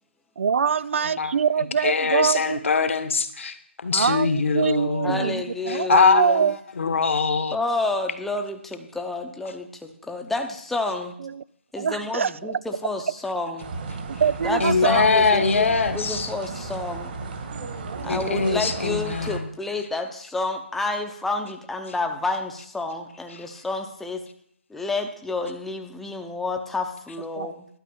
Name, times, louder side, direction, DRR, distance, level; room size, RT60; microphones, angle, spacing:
voice 1, 0.4-2.6 3.9-6.6 11.2-11.4 11.8-12.6 14.1-15.1 15.4-15.5 17.8-18.6 27.4-27.5, right 6 dB, 70° right, 0.4 m, -24 dB
voice 2, 1.8-5.3 5.7-6.2 6.8-7.6 14.6-16.3 18.1-19.5 23.3-23.5, left 5 dB, 70° left, 1.4 m, -22 dB
voice 3, 5.0-6.5 7.5-11.2 11.7-13.7 14.4-17.1 18.0-24.2 24.7-27.7, left 3 dB, 5° left, 0.8 m, -29 dB
sound 1, 13.6-19.4, right 3 dB, 45° right, 1.8 m, -34 dB
11.5 x 5.4 x 8.7 m
hypercardioid pair, 155°, 7 cm